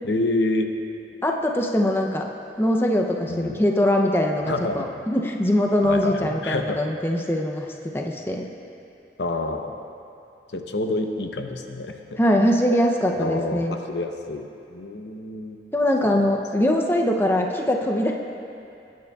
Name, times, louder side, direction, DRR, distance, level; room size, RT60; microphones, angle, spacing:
voice 1, 0.0-0.7 3.3-3.6 4.4-4.9 5.8-6.8 9.2-9.7 10.5-12.2 13.2-15.6 16.0-16.2, left 2 dB, 75° left, 5 dB, 0.7 m, -28 dB
voice 2, 1.2-2.3 2.6-8.5 12.2-13.8 15.7-18.1, left 1 dB, 15° left, 1 dB, 0.5 m, -22 dB
20.0 x 9.5 x 2.3 m, 2.7 s
head